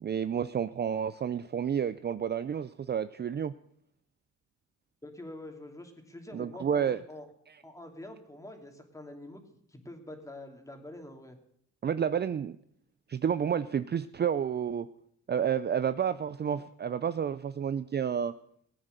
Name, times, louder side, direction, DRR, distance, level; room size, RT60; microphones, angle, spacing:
voice 1, 0.0-3.5 6.3-7.0 11.8-12.6 13.1-14.9 15.3-18.3, right 8 dB, 35° right, 13 dB, 0.5 m, -30 dB
voice 2, 5.0-7.2 7.6-9.4 9.7-11.4, left 1 dB, 10° left, 4 dB, 2.9 m, -46 dB
19.0 x 8.9 x 6.7 m, 0.68 s
cardioid pair, 90°, 30 cm